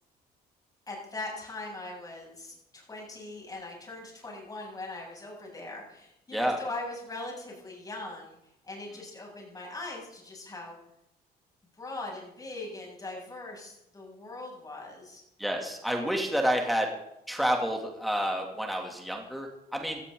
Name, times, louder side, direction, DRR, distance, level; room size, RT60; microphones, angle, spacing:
voice 1, 0.9-8.4 8.6-10.8 11.8-15.2, left 2 dB, 20° left, -1 dB, 7.5 m, -40 dB
voice 2, 15.4-16.9 17.3-20.0, equal, ahead, 1 dB, 2.9 m, -29 dB
18.0 x 13.5 x 4.0 m, 0.82 s
cardioid pair, 110°, 17 cm